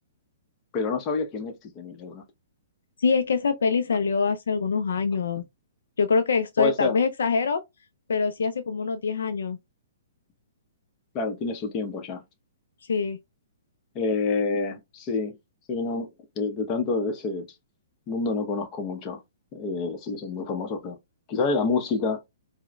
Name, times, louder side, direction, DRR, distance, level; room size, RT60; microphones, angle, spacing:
voice 1, 0.7-2.2 6.6-7.0 11.1-12.2 13.9-15.3 15.7-16.1 16.4-17.5 18.1-19.2 19.5-21.0 21.3-22.2, left 4 dB, 30° left, 0.8 m, -28 dB
voice 2, 3.0-5.4 6.0-7.6 8.1-9.6 12.9-13.2, left 5 dB, 75° left, 0.4 m, -24 dB
4.6 x 2.1 x 2.2 m
hypercardioid pair, 125°, 0 cm